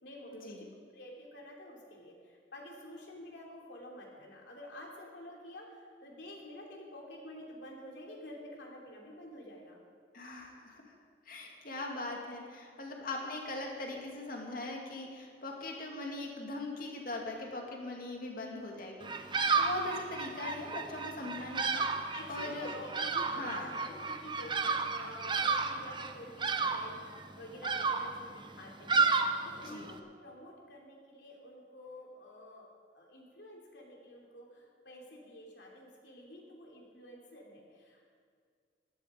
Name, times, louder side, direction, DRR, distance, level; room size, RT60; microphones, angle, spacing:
voice 1, 0.0-0.7 0.9-9.8 22.1-38.1, left 1 dB, 80° left, -1 dB, 3.1 m, -49 dB
voice 2, 10.1-10.9 11.2-19.2 19.6-22.7 23.3-23.7 29.6-29.9, left 2 dB, 50° left, 0 dB, 2.3 m, -40 dB
Bird vocalization bird call bird song, 19.0-30.0, right 4 dB, 25° right, 0.7 m, -32 dB
16.0 x 11.5 x 5.1 m, 2.1 s
head